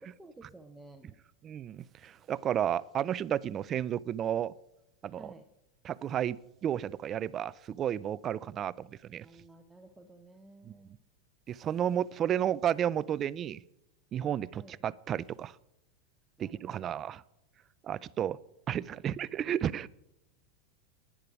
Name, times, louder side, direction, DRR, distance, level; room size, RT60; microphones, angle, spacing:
voice 1, 0.0-1.1 5.2-5.5 9.2-11.0 14.5-14.9 16.4-17.0, right 2 dB, 10° right, 4 dB, 0.9 m, -54 dB
voice 2, 1.4-4.5 5.0-5.3 5.8-6.4 6.6-9.3 10.6-11.0 11.5-13.6 14.1-15.6 16.4-17.2 17.8-18.4 18.7-19.9, right 10 dB, 35° right, 19 dB, 0.4 m, -32 dB
10.5 x 10.0 x 4.9 m, 0.88 s
hypercardioid pair, 115°, 0 cm